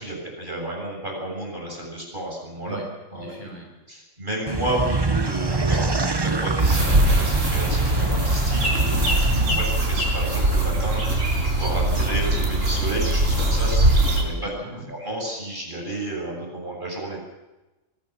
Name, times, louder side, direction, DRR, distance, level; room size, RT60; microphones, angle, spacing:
voice 1, 0.0-2.8 3.1-3.3 3.9-11.0 11.4-14.5 14.9-17.2, right 1 dB, 40° right, 0 dB, 7.9 m, -31 dB
voice 2, 2.6-3.7 9.3-9.6 14.3-14.9, right 1 dB, 35° left, 0 dB, 7.1 m, -37 dB
sound 1, 4.5-9.5, right 3 dB, 20° right, 0.8 m, -26 dB
sound 2, 6.6-14.2, right 1 dB, 80° right, 5.6 m, -21 dB
24.5 x 19.0 x 7.5 m, 1.1 s
omnidirectional pair, 1.3 m